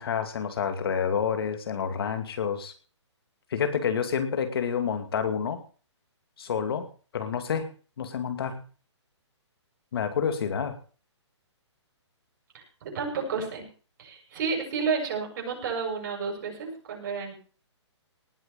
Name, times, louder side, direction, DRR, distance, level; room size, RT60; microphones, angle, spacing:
voice 1, 0.0-2.7 3.5-5.6 6.4-7.7 8.0-8.6 9.9-10.8, left 7 dB, 55° left, 8 dB, 2.4 m, -29 dB
voice 2, 12.5-13.6 14.0-17.3, right 5 dB, 40° right, 1 dB, 7.3 m, -31 dB
19.0 x 6.5 x 7.1 m, 0.39 s
hypercardioid pair, 165°, 15 cm